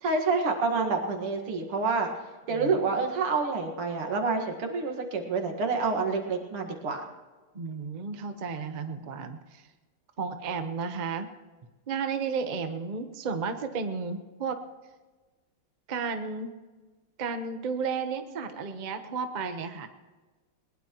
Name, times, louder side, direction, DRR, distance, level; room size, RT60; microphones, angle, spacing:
voice 1, 0.0-2.1 2.5-7.0, right 4 dB, 90° right, 3 dB, 2.7 m, -28 dB
voice 2, 7.5-9.6 10.2-11.3 11.9-14.6 15.9-16.5 17.2-19.9, right 5 dB, 35° right, 7 dB, 0.7 m, -33 dB
20.5 x 20.5 x 3.0 m, 1.3 s
omnidirectional pair, 2.4 m